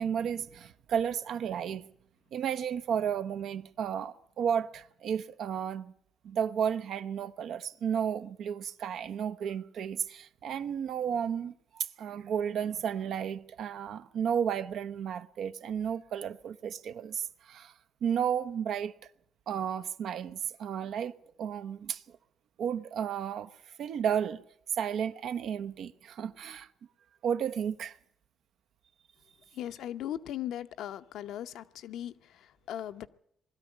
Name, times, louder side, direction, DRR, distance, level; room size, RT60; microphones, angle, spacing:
voice 1, 0.0-1.8 2.3-5.9 6.2-17.7 18.0-18.9 19.5-22.0 22.6-23.5 23.8-24.4 24.8-26.7 27.2-27.9, right 8 dB, 70° right, 0.8 m, -33 dB
voice 2, 29.5-33.1, left 11 dB, 75° left, 0.8 m, -38 dB
20.5 x 13.0 x 9.9 m
cardioid pair, 105°, 0 cm